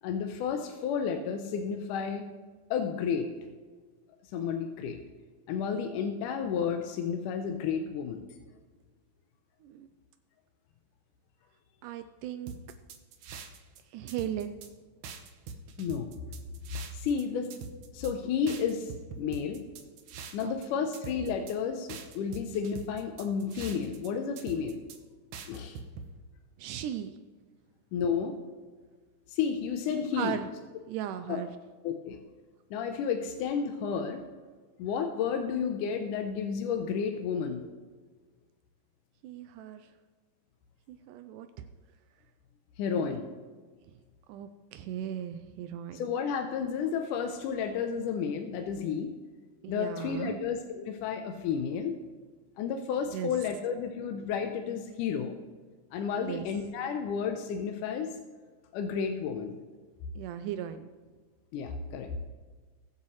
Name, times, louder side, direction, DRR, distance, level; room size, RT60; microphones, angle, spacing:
voice 1, 0.0-2.2 2.7-3.3 4.3-5.0 5.5-8.2 15.8-16.1 16.9-17.5 17.9-19.6 20.3-24.8 25.5-25.8 27.9-28.3 29.3-30.4 31.3-31.4 31.8-32.2 32.7-34.2 34.8-37.6 42.8-43.3 45.9-49.1 49.7-52.0 52.6-55.4 55.9-58.2 58.7-59.6 61.5-62.2, left 6 dB, 80° left, 5 dB, 2.2 m, -32 dB
voice 2, 11.8-12.5 13.9-14.6 20.4-20.6 26.6-27.2 30.1-30.5 30.9-31.6 39.2-39.9 40.9-41.7 43.0-43.2 44.3-46.0 49.6-50.4 53.1-53.3 56.1-56.5 60.2-60.9, right 10 dB, 85° right, 9 dB, 2.1 m, -37 dB
sound 1, 12.5-13.8 14.1-14.7 15.0-17.2 17.5-18.1 18.5-20.7 20.9-21.5 21.9-24.1 24.4-25.0 25.3-26.1, right 5 dB, 70° right, 2.3 m, -43 dB
21.0 x 8.4 x 3.1 m, 1.4 s
omnidirectional pair, 3.7 m